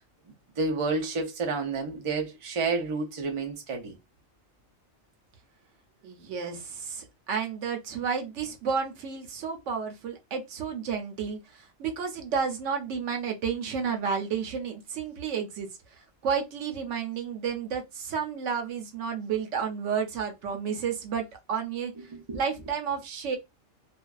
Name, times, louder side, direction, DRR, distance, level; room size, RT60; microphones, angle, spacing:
voice 1, 0.6-3.9 22.0-22.4, right 3 dB, 50° right, 0.3 m, -30 dB
voice 2, 6.0-11.4 11.8-15.7 16.2-21.9 22.3-23.4, right 6 dB, 70° right, 0.9 m, -31 dB
2.5 x 2.2 x 2.2 m
omnidirectional pair, 1.4 m